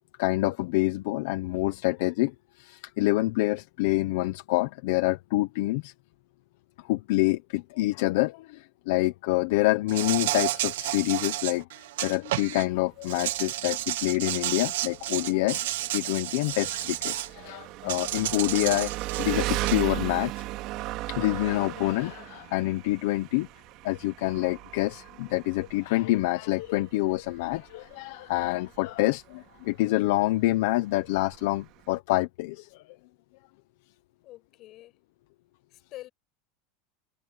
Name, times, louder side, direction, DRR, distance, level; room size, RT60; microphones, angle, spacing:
voice 1, 0.2-2.3 2.6-5.9 6.9-11.6 12.0-18.9 19.2-20.4 21.1-23.5 23.8-32.8, left 19 dB, 65° left, 0.9 m, -27 dB
Insect, 9.9-12.6 13.0-17.3 17.9-19.8, right 15 dB, 90° right, 1.3 m, -31 dB
Engine, 12.4-32.0, right 17 dB, 45° right, 3.4 m, -37 dB
voice 2, 34.2-35.0 35.7-36.1, left 16 dB, 35° left, 6.5 m, -46 dB
supercardioid pair, 165°, 0 cm